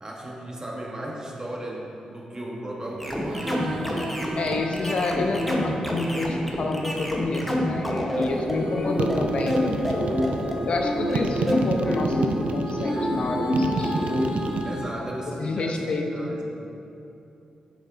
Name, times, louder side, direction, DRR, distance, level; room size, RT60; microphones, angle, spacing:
voice 1, 0.0-3.8 14.6-16.4, right 1 dB, 30° right, -2 dB, 1.0 m, -35 dB
sound 1, 3.0-14.6, equal, 5° left, 0.8 m, -27 dB
Female singing, 3.2-6.9 8.1-14.8, right 1 dB, 90° right, 0.9 m, -36 dB
voice 2, 4.4-10.3 10.6-14.1 15.4-16.3, left 3 dB, 60° left, 3 dB, 0.5 m, -28 dB
sound 2, 9.0-10.5 11.1-12.9 13.5-14.6, right 5 dB, 70° right, 0.3 m, -29 dB
7.5 x 5.3 x 2.5 m, 2.8 s
cardioid pair, 75°, 2 cm